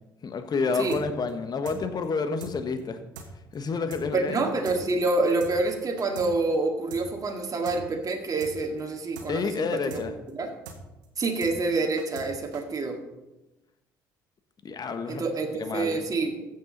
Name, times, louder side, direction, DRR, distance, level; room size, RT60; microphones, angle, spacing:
voice 1, 0.2-3.0 3.5-4.4 9.3-10.1 14.6-15.2 15.5-16.0, left 4 dB, 40° left, 8 dB, 1.4 m, -29 dB
sound 1, 0.9-1.0 1.3-1.4 1.6-1.8 2.0-2.1 2.4-2.5 2.8-2.9 3.1-3.3 3.5-3.6 3.9-4.0 4.3-4.4 4.6-4.8 5.0-5.1 5.4-5.5 5.8-6.3 6.5-6.6 6.9-7.0 7.3-7.4 7.6-7.8 8.0-8.1 8.4-8.5 8.8-8.9 9.1-9.3 9.5-9.6 9.9-10.0 10.3-10.4 10.6-10.8 11.0-11.1 11.4-11.5 11.8-12.3 12.5-12.6, right 5 dB, 80° right, 1.4 m, -43 dB
voice 2, 4.1-10.0 10.3-10.5 11.2-13.0 15.1-16.4, right 3 dB, 35° right, 2 dB, 1.9 m, -27 dB
15.0 x 7.1 x 4.0 m, 1.0 s
hypercardioid pair, 55°, 10 cm